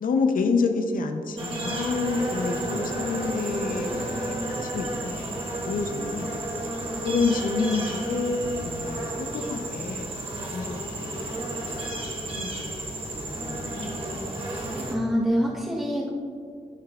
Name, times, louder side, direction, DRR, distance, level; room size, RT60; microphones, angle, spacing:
voice 1, 0.0-5.2 5.7-6.3 7.0-10.1 10.5-11.3 11.7-11.9 12.4-12.7 13.4-14.2, left 4 dB, 75° left, 5 dB, 0.6 m, -28 dB
sound 1, 1.4-15.0, right 1 dB, 40° right, 1.5 m, -32 dB
voice 2, 14.9-16.1, equal, 5° right, -5 dB, 1.0 m, -25 dB
13.0 x 5.6 x 2.4 m, 2.2 s
cardioid pair, 80°, 14 cm